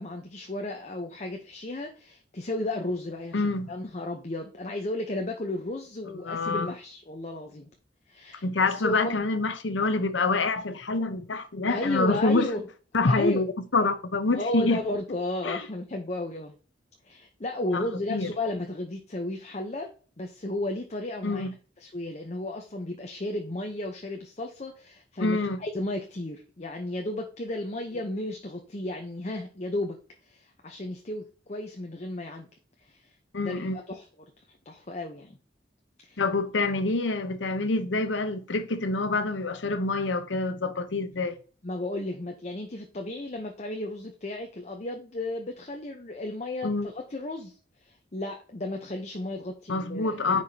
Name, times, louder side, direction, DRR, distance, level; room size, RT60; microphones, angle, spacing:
voice 1, 0.0-7.7 8.1-9.2 11.7-12.7 13.0-13.4 14.3-16.5 17.0-19.9 20.2-21.5 21.8-30.0 30.3-32.5 32.9-33.0 33.4-34.0 34.7-35.4 36.0-36.2 41.6-47.5 48.1-50.4, left 1 dB, 35° left, 0.8 m, -33 dB
voice 2, 3.3-3.7 6.2-6.7 8.4-12.5 12.9-13.5 13.7-14.8 15.4-15.6 17.7-18.3 21.2-21.5 25.2-25.6 33.3-33.8 36.2-41.3 46.6-46.9 49.7-50.4, left 3 dB, 85° left, 0.8 m, -26 dB
9.8 x 4.8 x 2.8 m
head